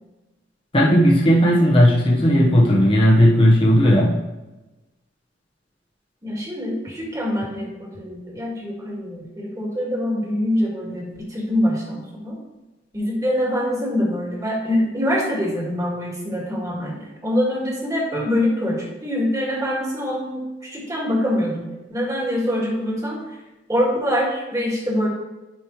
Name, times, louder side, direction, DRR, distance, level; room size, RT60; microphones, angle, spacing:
voice 1, 0.7-4.2, equal, 30° left, -3 dB, 1.0 m, -15 dB
voice 2, 6.2-12.4 12.9-23.2 23.7-25.1, equal, 20° right, -2 dB, 1.9 m, -24 dB
10.0 x 5.3 x 3.1 m, 1.1 s
head